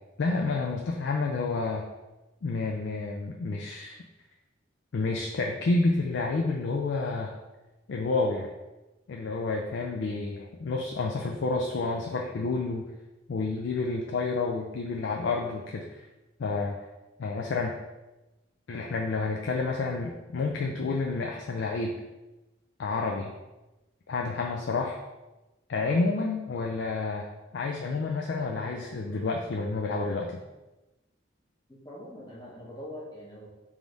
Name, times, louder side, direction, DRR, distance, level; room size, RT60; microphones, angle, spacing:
voice 1, 0.2-1.9 2.4-4.0 4.9-7.3 7.9-8.5 9.1-12.9 13.3-16.0 16.4-16.8 17.2-17.8 18.7-22.0 22.8-23.3 24.1-25.0 25.7-30.4, left 3 dB, 60° left, 1 dB, 0.4 m, -29 dB
voice 2, 31.7-33.5, left 1 dB, 20° left, -5 dB, 1.0 m, -43 dB
3.5 x 2.6 x 4.6 m, 1.1 s
head